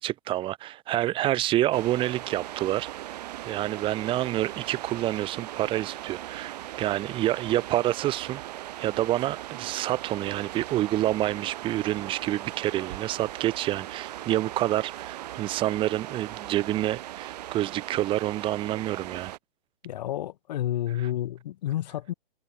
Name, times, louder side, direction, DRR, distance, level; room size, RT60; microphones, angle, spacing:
voice 1, 0.0-3.1 3.4-8.4 8.8-19.3, right 14 dB, 15° right, 1.5 m, -28 dB
sound 1, 1.7-19.4, right 14 dB, 45° right, 6.8 m, -39 dB
voice 2, 19.8-22.1, left 13 dB, 45° left, 3.3 m, -30 dB
hypercardioid pair, 145°, 29 cm